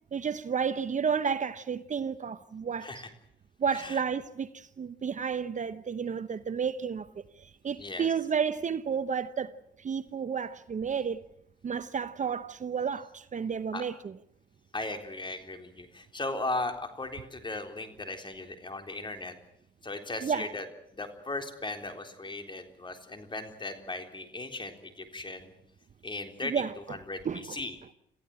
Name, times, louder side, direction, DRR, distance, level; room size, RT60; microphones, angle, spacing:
voice 1, 0.1-3.0 3.6-9.5 9.8-11.2 11.6-14.2 20.2-20.5 26.4-26.7 27.2-27.6, right 6 dB, 40° right, 0.9 m, -31 dB
voice 2, 3.7-4.0 7.8-8.1 13.7-13.8 14.7-19.4 19.8-20.7 20.9-25.5 26.0-26.6 26.9-27.7, left 2 dB, 25° left, 3.8 m, -37 dB
27.5 x 15.0 x 8.9 m
cardioid pair, 90°, 20 cm